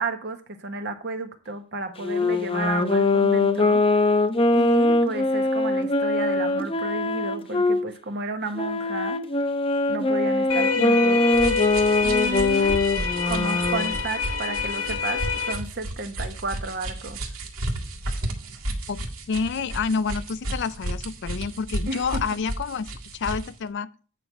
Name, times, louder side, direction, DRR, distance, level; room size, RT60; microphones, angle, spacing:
voice 1, 0.0-3.8 4.5-9.2 9.9-11.3 12.0-12.8 13.3-17.2 21.9-22.4, right 2 dB, 50° right, 1.2 m, -32 dB
Wind instrument woodwind instrument, 2.0-7.8 8.5-14.0, left 2 dB, 25° left, 0.7 m, -22 dB
sound 1, 10.5-15.5, left 6 dB, 80° left, 1.9 m, -27 dB
sound 2, 11.3-23.5, right 1 dB, 75° right, 1.9 m, -33 dB
voice 2, 19.3-22.9 23.1-23.9, left 5 dB, 55° left, 0.4 m, -28 dB
8.8 x 4.6 x 5.5 m
head